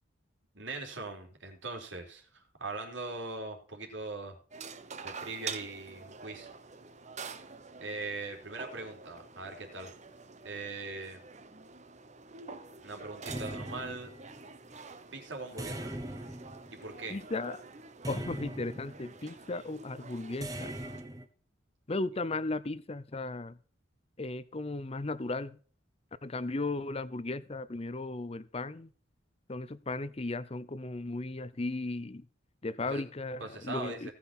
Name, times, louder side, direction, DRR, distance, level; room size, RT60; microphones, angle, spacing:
voice 1, 0.5-4.4 5.0-6.5 7.8-9.9 10.4-11.2 12.8-14.1 15.1-15.9 16.7-17.2 32.9-33.0 33.4-34.1, right 3 dB, 70° right, 3.6 m, -41 dB
sound 1, 4.5-21.0, right 5 dB, 40° right, 1.1 m, -47 dB
sound 2, 13.2-14.5 15.6-17.2 18.0-19.2 20.4-21.3, right 1 dB, 20° right, 1.4 m, -41 dB
voice 2, 17.1-17.6 18.1-20.7 21.9-23.6 24.2-25.6 26.2-28.9 29.5-32.2 32.6-34.1, left 2 dB, 30° left, 0.6 m, -36 dB
18.0 x 6.1 x 4.4 m
head